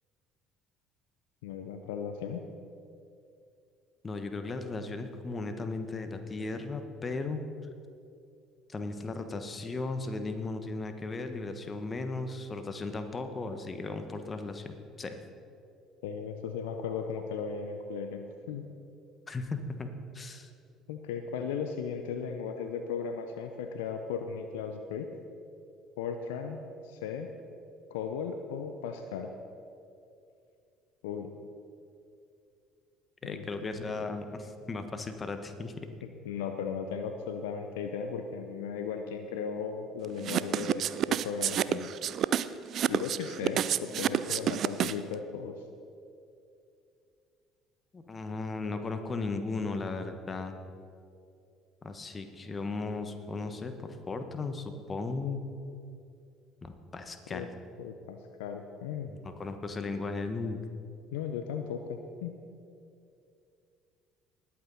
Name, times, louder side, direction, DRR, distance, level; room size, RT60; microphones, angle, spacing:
voice 1, 1.4-2.4 16.0-18.7 20.9-25.1 26.0-27.3 27.9-29.3 31.0-31.3 33.2-34.0 36.2-41.9 42.9-45.6 57.3-57.5 57.8-59.1 61.1-62.3, left 6 dB, 75° left, 7 dB, 0.6 m, -36 dB
voice 2, 4.0-7.4 8.7-15.2 19.3-19.9 20.1-20.5 33.2-35.9 47.9-50.6 51.8-55.5 56.6-57.5 59.1-60.6, left 3 dB, 30° left, 7 dB, 1.3 m, -36 dB
sound 1, 40.2-45.1, right 10 dB, 55° right, 0.4 m, -28 dB
20.0 x 8.6 x 4.1 m, 2.5 s
hypercardioid pair, 60°, 0 cm